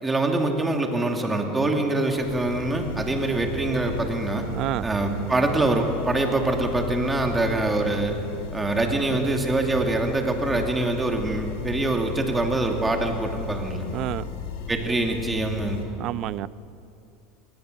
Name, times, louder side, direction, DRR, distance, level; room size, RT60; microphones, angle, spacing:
voice 1, 0.0-4.4 4.8-8.2 8.5-13.8 14.7-15.8, right 2 dB, 15° right, 2 dB, 2.6 m, -24 dB
sound 1, 2.1-15.8, left 4 dB, 80° left, 3.3 m, -35 dB
voice 2, 4.5-4.9 13.8-14.3 16.0-16.5, right 15 dB, 50° right, 18 dB, 0.5 m, -29 dB
22.0 x 18.5 x 6.8 m, 2.7 s
supercardioid pair, 120°, 0 cm